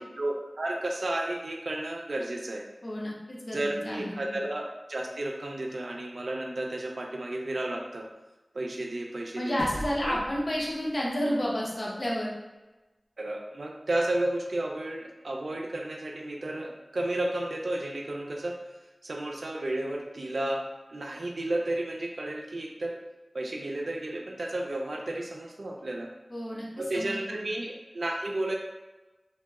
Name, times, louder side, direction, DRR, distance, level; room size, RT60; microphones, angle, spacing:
voice 1, 0.0-2.7 3.5-8.1 8.5-9.6 10.1-10.2 13.2-18.6 19.0-23.0 23.3-26.1 26.8-28.5, right 1 dB, 85° right, 1 dB, 0.4 m, -32 dB
voice 2, 2.8-4.4 9.4-12.3 26.3-26.7 26.9-27.4, equal, 65° left, -4 dB, 0.7 m, -31 dB
sound 1, 9.6-12.2, equal, 35° left, 1.0 m, -41 dB
2.9 x 2.0 x 3.4 m, 1.1 s
wide cardioid pair, 55°, 0 cm